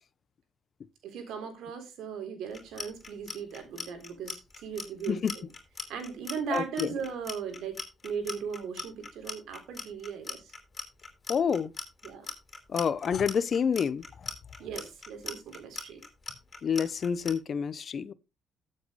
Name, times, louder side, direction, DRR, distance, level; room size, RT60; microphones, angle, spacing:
voice 1, 1.0-5.2 5.9-10.5 12.0-12.3 14.6-16.0, right 6 dB, 85° right, 3.8 m, -38 dB
Clock, 2.5-17.3, left 4 dB, 30° left, 4.5 m, -39 dB
voice 2, 6.5-6.9 11.3-11.7 12.7-14.3 16.6-18.1, left 7 dB, 50° left, 0.8 m, -28 dB
13.5 x 7.9 x 3.3 m
cardioid pair, 90°, 0 cm